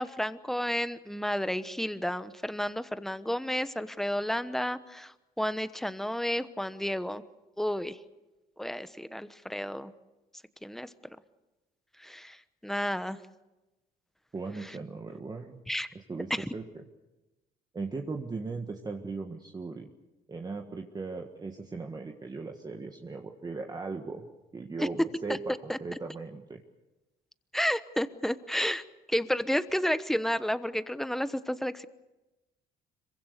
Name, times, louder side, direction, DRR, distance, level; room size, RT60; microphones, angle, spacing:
voice 1, 0.0-7.2 7.6-8.0 8.6-9.9 10.6-10.9 12.0-13.2 14.6-14.8 15.7-15.9 16.3-16.5 24.8-24.9 25.3-25.4 25.7-25.8 27.5-28.8 29.1-31.9, equal, ahead, 13 dB, 1.1 m, -31 dB
voice 2, 14.3-15.6 16.1-16.8 17.7-19.9 20.3-24.2 24.5-26.6, right 4 dB, 25° right, 3 dB, 1.7 m, -38 dB
26.0 x 23.5 x 6.7 m, 1.1 s
cardioid pair, 110°, 17 cm